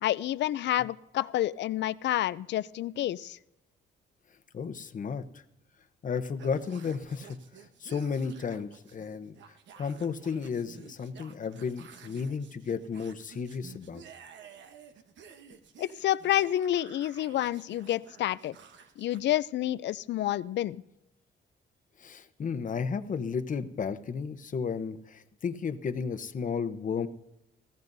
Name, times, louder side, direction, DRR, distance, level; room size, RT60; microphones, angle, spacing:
voice 1, 0.0-3.4 15.8-18.6 19.0-20.8, left 13 dB, 65° left, 18 dB, 0.4 m, -29 dB
voice 2, 4.5-5.2 6.0-7.4 7.8-9.4 9.8-14.0 22.0-27.1, left 6 dB, 40° left, 10 dB, 0.9 m, -33 dB
sound 1, 6.4-19.2, right 7 dB, 70° right, 1.1 m, -53 dB
20.5 x 15.0 x 2.7 m, 0.89 s
cardioid pair, 90°, 20 cm